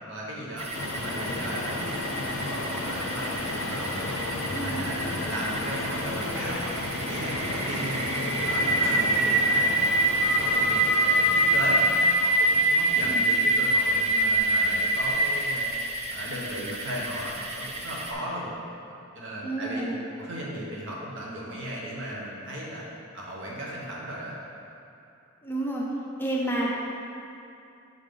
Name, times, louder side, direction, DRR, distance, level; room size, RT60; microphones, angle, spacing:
voice 1, 0.0-3.3 3.7-8.0 8.4-9.7 10.0-11.9 12.2-15.7 16.1-18.5 18.8-19.9 20.2-22.8 23.1-24.3, right 1 dB, 65° right, -4 dB, 1.2 m, -36 dB
sound 1, 0.6-18.1, right 1 dB, 30° right, 0.6 m, -26 dB
sound 2, 0.7-12.2, left 3 dB, 70° left, 0.5 m, -33 dB
voice 2, 4.5-4.8 13.0-13.2 19.4-20.0 25.4-25.8 26.2-26.8, right 1 dB, 10° left, -4 dB, 0.6 m, -30 dB
5.6 x 5.1 x 3.8 m, 2.7 s
head